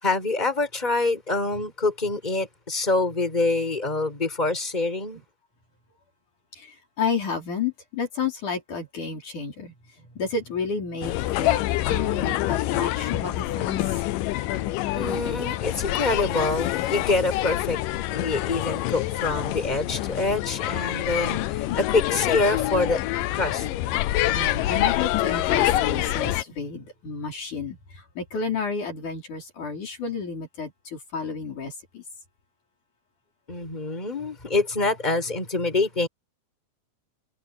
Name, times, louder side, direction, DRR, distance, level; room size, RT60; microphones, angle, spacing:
voice 1, 0.0-5.2 14.9-17.8 18.1-23.0 23.3-23.7 33.5-36.1, left 3 dB, 10° left, 5.6 m, -26 dB
voice 2, 7.0-9.7 10.2-13.8 24.3-27.8 28.2-32.0, left 5 dB, 55° left, 5.9 m, -31 dB
sound 1, 11.0-26.4, left 15 dB, 80° left, 2.3 m, -26 dB
omnidirectional pair, 4.1 m